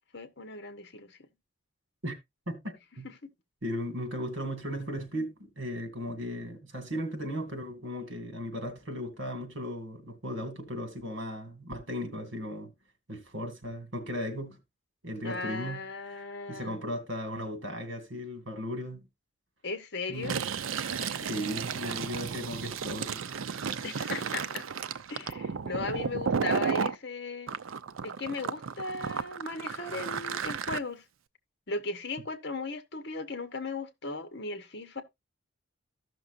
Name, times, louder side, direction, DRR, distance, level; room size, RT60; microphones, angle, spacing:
voice 1, 0.1-1.2 15.2-16.8 19.6-20.4 21.0-21.3 23.8-24.6 25.1-27.5 28.0-31.0 31.7-35.0, left 3 dB, 55° left, 1.2 m, -37 dB
voice 2, 2.5-3.1 3.6-12.7 13.1-14.6 15.0-15.8 16.5-19.0 20.1-20.5 21.3-23.2 23.5-23.6, equal, 70° right, 2.3 m, -36 dB
Fill (with liquid), 20.1-27.0 27.5-30.8, right 6 dB, 85° right, 0.5 m, -33 dB
15.0 x 6.1 x 2.6 m
head